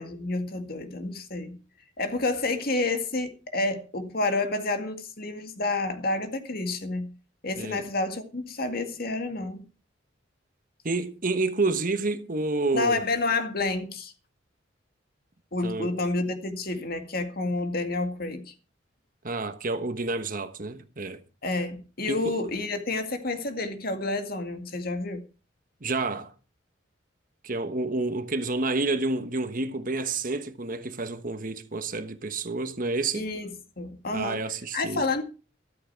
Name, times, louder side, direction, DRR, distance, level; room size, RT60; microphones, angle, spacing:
voice 1, 0.0-1.6 2.0-7.1 7.4-9.7 12.7-14.1 15.5-18.5 21.4-25.2 33.1-33.5 33.8-34.4 34.7-35.2, left 2 dB, 50° left, 2.1 m, -29 dB
voice 2, 7.6-7.9 10.8-13.0 15.6-15.9 19.2-21.2 22.1-22.3 25.8-26.3 27.4-33.3 34.1-35.0, right 3 dB, 45° right, 1.2 m, -29 dB
14.0 x 13.0 x 4.6 m
head